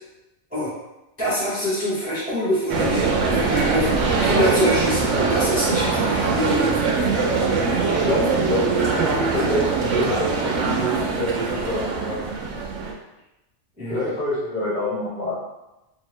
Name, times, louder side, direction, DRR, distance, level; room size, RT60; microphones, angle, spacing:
voice 1, 1.2-3.0 3.3-6.8 13.8-14.1, equal, 10° right, -10 dB, 0.8 m, -25 dB
sound 1, 2.7-12.9, right 4 dB, 75° right, 0.9 m, -22 dB
voice 2, 8.0-12.2 13.9-15.3, left 1 dB, 35° left, -10 dB, 1.4 m, -26 dB
2.7 x 2.6 x 3.0 m, 0.96 s
omnidirectional pair, 1.3 m